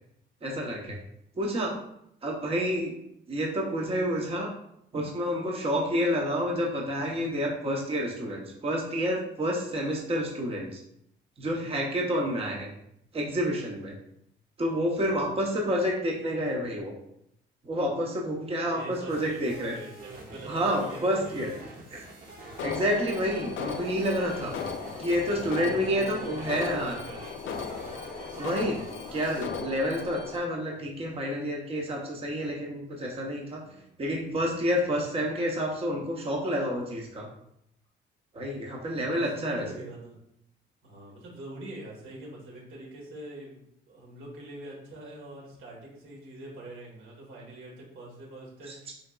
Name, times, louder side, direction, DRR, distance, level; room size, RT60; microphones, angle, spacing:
voice 1, 0.4-1.0 1.4-1.7 2.2-2.9 3.3-4.5 4.9-10.8 11.4-12.7 13.1-14.0 14.6-16.9 17.6-19.8 20.5-21.5 21.9-22.0 22.6-24.5 25.0-27.0 28.4-28.8 29.1-33.6 34.0-37.3 38.3-39.6 48.7-48.8, equal, 30° right, -1 dB, 0.7 m, -29 dB
voice 2, 15.0-15.3 18.6-21.9 24.3-24.8 25.2-25.4 25.9-27.6 28.3-28.8 33.6-34.0 39.2-40.2 40.8-48.9, right 1 dB, 85° right, -2 dB, 1.4 m, -45 dB
sound 1, 19.1-29.4, right 1 dB, 45° right, 1.1 m, -45 dB
Alarm, 22.6-30.4, left 5 dB, 80° left, 0.5 m, -37 dB
3.9 x 3.5 x 2.3 m, 0.76 s
cardioid pair, 90°, 20 cm